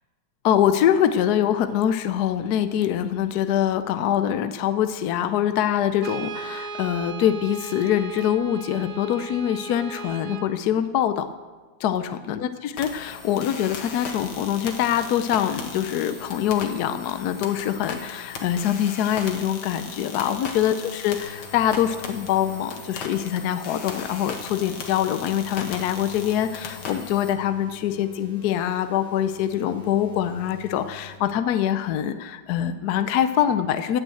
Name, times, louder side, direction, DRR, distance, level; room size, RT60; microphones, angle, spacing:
voice 1, 0.4-11.3 11.8-34.0, left 10 dB, 70° left, 10 dB, 0.9 m, -24 dB
Brass instrument, 6.0-10.6, right 5 dB, 55° right, 1.3 m, -36 dB
sound 1, 12.8-27.3, left 5 dB, 85° left, 2.3 m, -38 dB
sound 2, 21.2-31.2, left 4 dB, 40° right, 1.9 m, -48 dB
18.5 x 6.3 x 7.7 m, 1.4 s
omnidirectional pair, 2.3 m